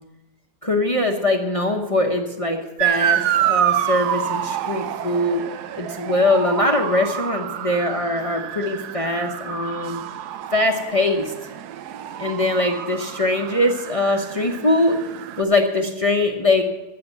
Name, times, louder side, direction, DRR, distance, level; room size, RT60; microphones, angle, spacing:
voice 1, 0.6-5.4 5.7-10.0 10.5-11.3 12.2-15.0 15.4-16.6, left 2 dB, 25° left, 3 dB, 0.9 m, -22 dB
Motor vehicle (road) / Siren, 2.8-15.4, right 10 dB, 75° right, 1.2 m, -27 dB
14.5 x 6.9 x 7.9 m, 1.0 s
omnidirectional pair, 1.7 m